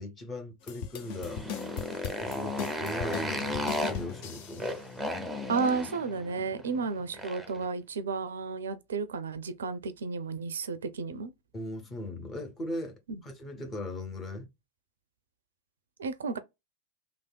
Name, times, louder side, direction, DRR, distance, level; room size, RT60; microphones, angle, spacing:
voice 1, 0.0-1.4 2.2-4.7 11.5-14.5, left 1 dB, 20° left, 0.9 m, -39 dB
sound 1, 0.6-4.8, left 7 dB, 45° left, 0.5 m, -40 dB
Motorcycle, 1.0-7.6, left 1 dB, 5° right, 0.6 m, -35 dB
voice 2, 5.5-11.3 16.0-16.4, right 4 dB, 65° right, 0.4 m, -32 dB
3.4 x 2.2 x 2.2 m
figure-of-eight pair, 90°, 0 cm